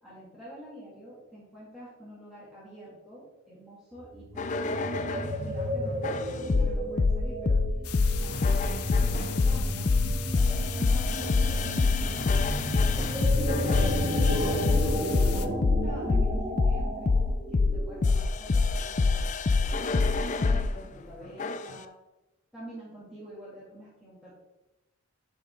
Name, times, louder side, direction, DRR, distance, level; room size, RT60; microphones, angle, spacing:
voice 1, 0.0-6.2 6.4-7.6 8.0-9.9 10.4-13.4 13.9-17.2 17.5-21.9 22.5-24.3, right 1 dB, ahead, -10 dB, 2.3 m, -47 dB
sound 1, 4.0-18.1, equal, 25° right, 1.7 m, -33 dB
sound 2, 4.4-5.4 6.0-20.7 21.4-21.8, left 3 dB, 35° left, 0.3 m, -25 dB
sound 3, 7.8-15.5, left 12 dB, 85° left, 0.6 m, -40 dB
10.5 x 5.4 x 3.8 m, 1.0 s
head